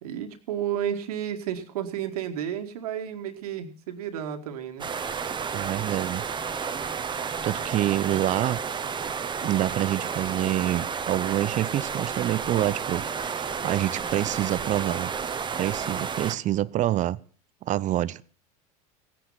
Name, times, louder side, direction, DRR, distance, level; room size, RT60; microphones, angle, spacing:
voice 1, 0.0-4.9, right 10 dB, 75° right, 7 dB, 2.1 m, -32 dB
sound 1, 4.8-16.3, right 6 dB, 25° right, 1.2 m, -31 dB
voice 2, 5.5-6.2 7.4-8.6 9.4-15.1 15.6-17.2 17.6-18.2, right 13 dB, 40° right, 19 dB, 0.7 m, -27 dB
16.5 x 10.5 x 5.9 m, 0.42 s
hypercardioid pair, 85°, 19 cm